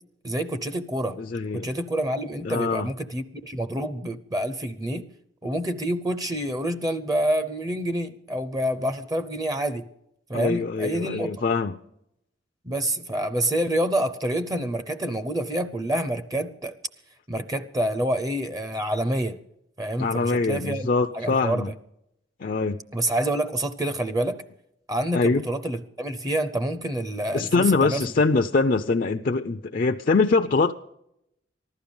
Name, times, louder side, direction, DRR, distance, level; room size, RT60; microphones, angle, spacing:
voice 1, 0.2-1.2 1.5-5.0 5.4-9.9 10.3-11.3 12.6-16.7 17.3-19.4 19.8-21.7 22.9-24.4 24.9-28.0, right 1 dB, 20° right, 0.6 m, -27 dB
voice 2, 1.2-1.7 2.4-2.9 10.3-11.7 20.0-21.7 22.4-22.8 25.1-25.4 27.3-30.7, left 4 dB, 45° left, 0.5 m, -23 dB
15.5 x 12.0 x 7.0 m
head